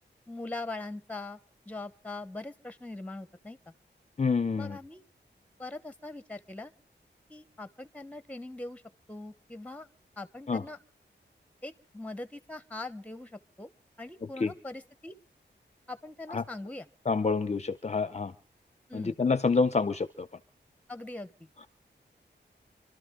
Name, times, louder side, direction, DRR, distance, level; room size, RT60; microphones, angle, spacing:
voice 1, 0.3-1.4 1.7-3.7 4.6-5.0 5.6-6.7 7.3-8.8 9.1-9.9 10.2-10.8 11.6-13.7 14.0-15.1 15.9-16.9 18.9-19.2 20.9-21.3, left 2 dB, 5° left, 12 dB, 1.1 m, -41 dB
voice 2, 4.2-4.8 10.5-10.6 14.4-14.5 16.3-16.4 17.1-18.3 18.9-20.3, left 4 dB, 35° left, 12 dB, 0.7 m, -27 dB
27.5 x 13.0 x 3.7 m, 0.38 s
wide cardioid pair, 110°, 19 cm